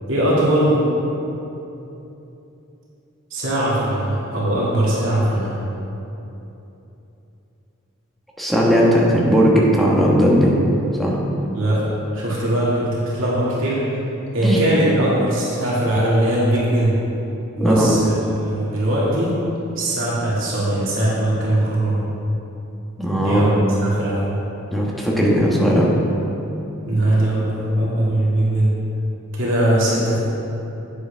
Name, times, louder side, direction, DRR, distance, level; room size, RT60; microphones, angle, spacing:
voice 1, 0.1-0.9 3.3-5.6 11.4-11.8 12.1-13.8 14.3-17.0 17.6-18.1 18.4-19.3 19.8-22.0 23.2-24.3 26.8-28.7 29.3-30.2, right 1 dB, 65° right, -7 dB, 2.2 m, -20 dB
voice 2, 8.4-10.6 11.0-11.2 14.4-14.6 17.6-17.9 23.0-23.4 24.7-25.9, equal, ahead, -4 dB, 1.3 m, -17 dB
10.5 x 8.5 x 3.5 m, 3.0 s
head